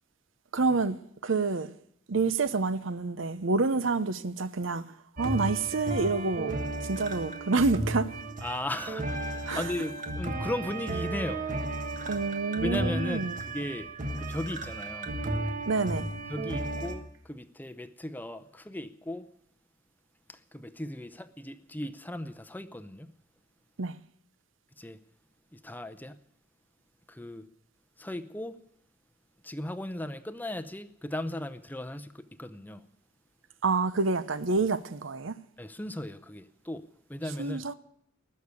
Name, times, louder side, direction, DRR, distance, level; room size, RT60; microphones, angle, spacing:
voice 1, 0.5-1.7 2.1-4.8 5.2-6.5 6.9-8.1 9.5-9.6 12.0-13.4 15.7-16.1 23.8-23.9 33.6-35.4 37.4-37.7, right 3 dB, 65° right, 0.7 m, -28 dB
sound 1, 5.2-16.9, right 2 dB, 40° right, 1.5 m, -34 dB
voice 2, 8.4-11.5 12.6-13.9 14.2-15.1 16.3-19.2 20.3-23.1 24.8-25.0 25.5-26.2 27.1-27.5 28.0-28.6 29.4-32.8 35.6-36.8 37.1-37.7, left 1 dB, 10° left, 0.7 m, -37 dB
20.0 x 6.7 x 9.6 m
head